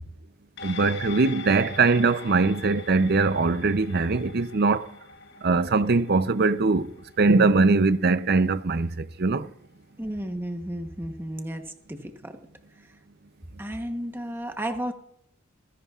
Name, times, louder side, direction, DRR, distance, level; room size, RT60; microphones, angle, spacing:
sound 1, 0.6-9.3 9.6-9.7, left 5 dB, 50° left, 1.0 m, -44 dB
voice 1, 0.6-4.9 5.4-6.9 7.2-9.5, right 3 dB, 45° right, 0.6 m, -21 dB
voice 2, 10.0-12.4 13.6-14.9, right 1 dB, 10° right, 1.0 m, -33 dB
26.5 x 11.0 x 2.4 m
head